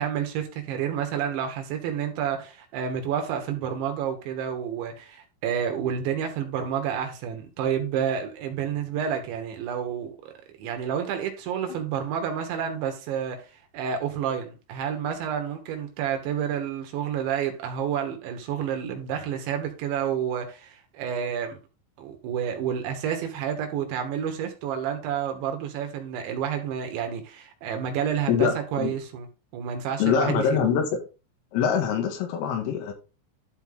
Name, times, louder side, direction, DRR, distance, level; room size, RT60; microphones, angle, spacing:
voice 1, 0.0-13.4 13.7-21.6 22.0-29.3 29.5-30.7, right 8 dB, 70° right, 3.4 m, -29 dB
voice 2, 28.3-28.9 30.0-30.9 31.5-32.9, left 7 dB, 85° left, 4.3 m, -24 dB
12.0 x 4.6 x 3.8 m
omnidirectional pair, 5.8 m